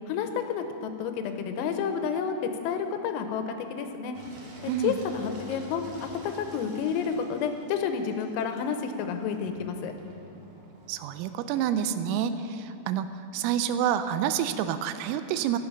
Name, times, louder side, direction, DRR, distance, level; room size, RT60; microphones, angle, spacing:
voice 1, 0.1-2.4 2.6-4.2 4.8-5.8 6.2-9.9, left 7 dB, 85° left, 7 dB, 3.5 m, -30 dB
Engine, 4.1-11.5, equal, 65° right, 1.6 m, -48 dB
voice 2, 4.7-5.0 10.9-13.1 13.3-15.6, right 9 dB, 85° right, 11 dB, 3.2 m, -28 dB
14.5 x 11.0 x 5.6 m, 2.8 s
omnidirectional pair, 6.0 m